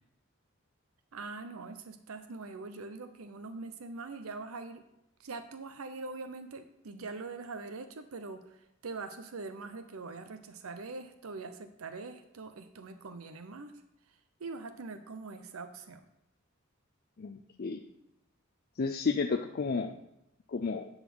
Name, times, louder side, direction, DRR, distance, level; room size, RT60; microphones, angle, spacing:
voice 1, 1.1-4.8 5.2-13.7 14.1-16.0, right 3 dB, 90° right, 9 dB, 0.7 m, -43 dB
voice 2, 17.2-17.8 18.8-19.9 20.5-20.9, left 4 dB, 45° left, 4 dB, 0.4 m, -32 dB
10.5 x 4.0 x 6.1 m, 0.84 s
head